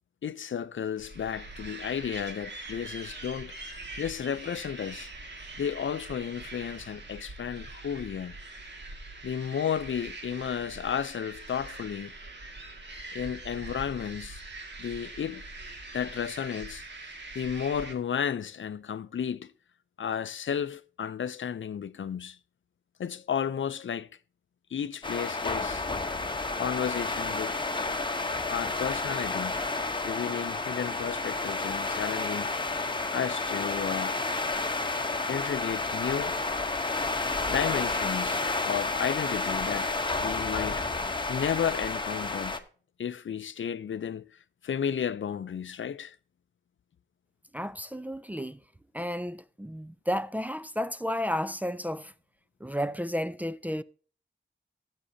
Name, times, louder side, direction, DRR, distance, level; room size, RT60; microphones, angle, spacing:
voice 1, 0.2-5.1 5.6-8.4 9.2-12.1 13.1-14.4 14.8-15.4 15.9-16.8 17.3-19.5 20.0-22.4 23.0-24.1 24.7-25.8 26.6-27.6 28.5-29.6 30.0-32.5 33.1-34.2 35.3-36.4 37.5-39.9 40.2-40.9 41.3-42.6 43.0-44.3 44.6-46.2, left 8 dB, 80° left, 0.6 m, -33 dB
sound 1, 1.0-17.9, right 2 dB, 65° right, 2.0 m, -43 dB
sound 2, 25.0-42.6, left 3 dB, 25° left, 0.9 m, -31 dB
voice 2, 47.5-48.6 48.9-52.1 52.6-53.8, equal, 10° right, 0.4 m, -32 dB
15.0 x 7.5 x 2.7 m
wide cardioid pair, 125°, 20 cm